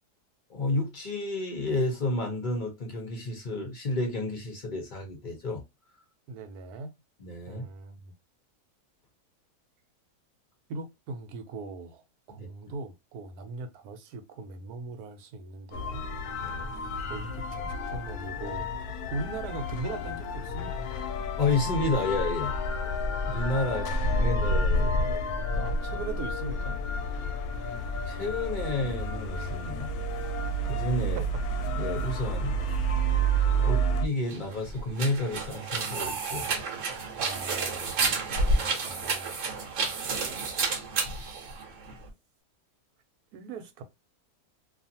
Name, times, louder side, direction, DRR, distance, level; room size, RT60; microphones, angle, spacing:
voice 1, 0.5-5.6 7.2-7.7 12.3-12.5 16.4-16.7 21.4-22.6 23.3-23.8 24.1-24.9 28.1-29.9 30.6-31.2 31.8-32.6 33.6-36.5, left 2 dB, 50° left, 0.6 m, -31 dB
voice 2, 6.3-6.9 7.5-8.1 10.7-12.0 12.3-16.1 17.1-18.7 19.1-20.9 23.6-26.8 31.2-31.3 33.6-33.8 37.2-39.4 43.3-43.8, right 3 dB, 75° right, 1.1 m, -40 dB
sound 1, 15.7-34.1, right 1 dB, 70° left, 1.0 m, -30 dB
sound 2, 34.2-42.1, right 3 dB, 60° right, 1.0 m, -30 dB
2.5 x 2.4 x 2.7 m
omnidirectional pair, 1.7 m